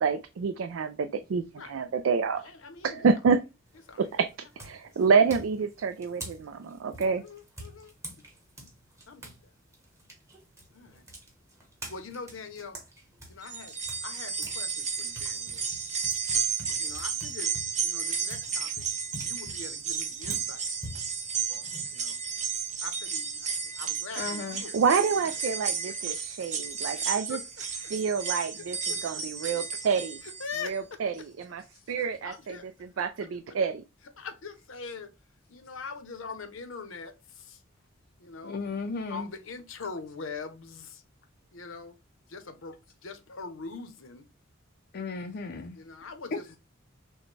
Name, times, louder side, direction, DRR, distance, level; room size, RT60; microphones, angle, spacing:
voice 1, 0.0-2.4 2.8-3.4 4.0-4.3 4.6-7.2 24.7-27.4 27.9-28.8 29.0-30.2 30.6-31.6 31.9-33.8, right 5 dB, 70° right, 0.4 m, -27 dB
voice 2, 2.3-3.1 3.9-4.0 4.9-5.0 7.0-7.9 9.1-9.5 10.7-11.1 11.9-12.8 13.3-13.8 14.0-15.7 16.7-17.5 17.8-18.9 19.2-20.6 21.9-22.2 22.8-25.6 26.9-27.4 27.8-27.9 28.6-29.2 30.2-31.0 32.0-33.3 34.2-35.1 35.5-37.6 38.2-38.6 39.1-41.0 41.5-42.0 42.3-44.3 45.7-46.6, left 4 dB, 75° left, 0.8 m, -43 dB
sound 1, 3.7-4.0 4.6-9.4 9.7-14.6 14.9-22.3, right 1 dB, 15° right, 1.1 m, -45 dB
sound 2, 13.4-30.7 31.1-31.2 32.3-32.4, right 6 dB, 35° right, 0.9 m, -33 dB
voice 3, 24.2-24.6 31.7-31.8 38.4-39.3 44.9-45.8 46.3-46.4, left 4 dB, 55° left, 0.5 m, -34 dB
6.2 x 2.2 x 3.2 m
head